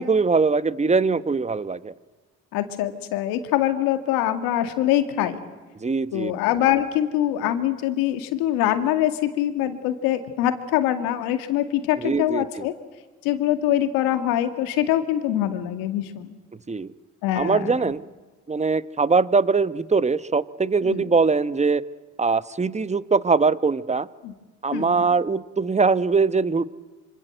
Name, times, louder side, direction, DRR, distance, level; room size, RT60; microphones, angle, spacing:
voice 1, 0.0-1.9 5.8-6.3 12.0-12.7 16.7-16.9 17.4-18.0 18.5-21.8 22.2-24.1 24.6-26.6, right 4 dB, 20° right, 15 dB, 1.1 m, -22 dB
voice 2, 2.5-5.4 6.1-12.7 13.2-16.4 17.2-17.7 20.8-21.0 24.2-24.3 24.7-25.0, left 12 dB, 85° left, 8 dB, 2.2 m, -24 dB
26.0 x 26.0 x 7.9 m, 1.3 s
supercardioid pair, 60°, 34 cm